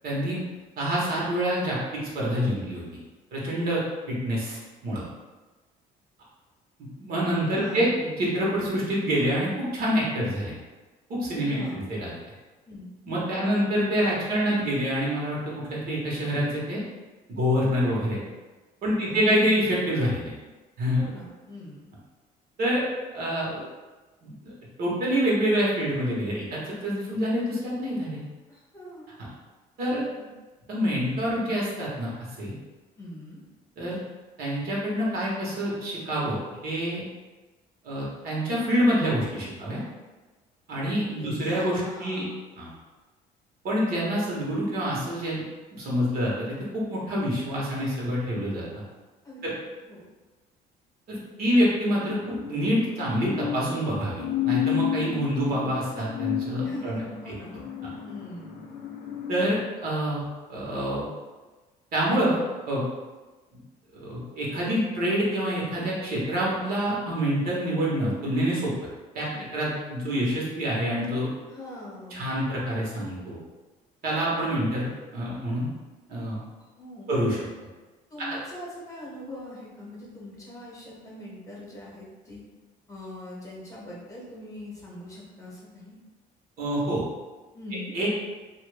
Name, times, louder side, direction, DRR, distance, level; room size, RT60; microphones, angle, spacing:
voice 1, 0.0-0.4 0.8-2.8 3.3-3.8 4.1-5.0 7.0-7.9 8.2-10.5 11.1-11.6 11.9-12.1 13.1-15.4 15.7-16.8 17.3-18.2 18.8-20.3 20.8-21.0 22.6-22.8 23.1-23.6 24.2-24.5 24.8-28.2 29.8-30.0 30.7-32.1 32.4-32.5 33.8-34.0 34.4-37.0 37.8-39.8 40.7-42.2 42.6-42.7 43.6-45.4 45.7-48.6 49.4-49.5 51.1-57.0 59.3-60.2 60.5-61.1 61.9-62.4 62.7-62.8 64.0-68.7 69.1-69.3 69.5-71.3 72.1-73.4 74.0-75.7 76.1-76.4 77.1-77.4 78.2-78.3 86.6-87.0 87.9-88.1, equal, 65° right, -5 dB, 1.2 m, -26 dB
voice 2, 7.5-8.0 11.4-11.8 12.6-12.9 13.3-13.5 18.8-19.3 21.0-21.8 28.5-29.1 29.9-30.3 33.0-33.4 41.1-42.3 49.2-49.6 49.9-50.0 56.6-57.5 58.0-58.5 69.3-69.5 71.5-72.2 76.8-77.1 78.1-82.4 82.9-86.0 87.5-88.0, left 1 dB, 20° left, -5 dB, 1.0 m, -42 dB
sound 1, 52.0-59.5, left 9 dB, 70° left, 0.5 m, -32 dB
3.0 x 2.5 x 3.3 m, 1.2 s
cardioid pair, 110°, 17 cm